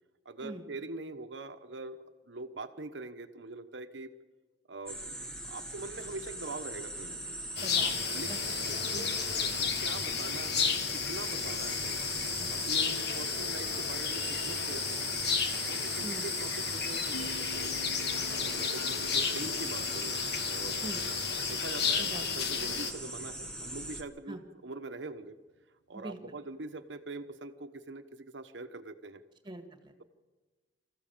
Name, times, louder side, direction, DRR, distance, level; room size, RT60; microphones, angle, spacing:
voice 1, 0.2-4.1 4.7-7.4 8.1-8.3 8.7-9.1 9.4-12.0 12.5-17.7 18.3-20.9 21.5-24.4 24.6-25.4 25.9-29.2, right 2 dB, 75° right, 9 dB, 1.1 m, -43 dB
sound 1, 4.9-24.0, right 1 dB, 5° left, 1.6 m, -41 dB
sound 2, 7.6-22.9, left 6 dB, 60° left, 1.4 m, -32 dB
voice 2, 7.6-9.2 12.4-12.5 16.0-16.3 20.8-21.0 22.0-22.3 24.3-24.4 25.9-26.3 29.4-30.0, right 1 dB, 25° right, 6 dB, 1.8 m, -44 dB
sound 3, 17.1-22.5, left 1 dB, 90° left, 0.9 m, -49 dB
25.5 x 14.5 x 7.3 m, 1.3 s
head